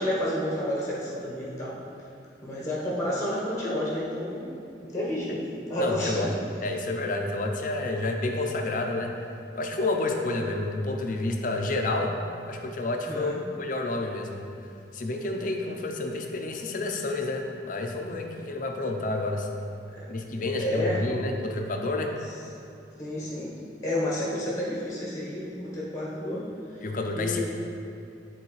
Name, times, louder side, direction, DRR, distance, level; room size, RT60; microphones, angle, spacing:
voice 1, 0.0-1.8 2.4-4.5 4.8-6.3 13.1-13.5 19.9-20.1 20.6-21.0 23.0-23.5 23.8-26.5 27.1-27.4, left 1 dB, 15° left, -6 dB, 1.1 m, -30 dB
voice 2, 5.8-6.3 6.6-9.1 9.6-12.2 12.5-14.4 14.9-19.5 20.1-22.1 26.8-27.4, left 2 dB, 45° left, 3 dB, 0.6 m, -29 dB
10.0 x 3.9 x 3.2 m, 2.5 s
head